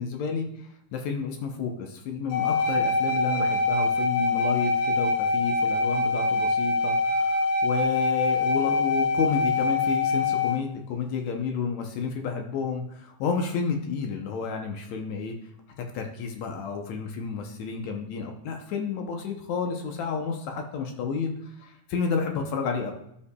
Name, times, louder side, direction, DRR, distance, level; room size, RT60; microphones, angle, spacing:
voice 1, 0.0-15.3 15.8-22.9, left 5 dB, 70° left, 3 dB, 1.9 m, -31 dB
sound 1, 2.3-10.6, left 3 dB, 90° left, 2.7 m, -24 dB
13.0 x 5.6 x 2.3 m, 0.76 s
omnidirectional pair, 3.6 m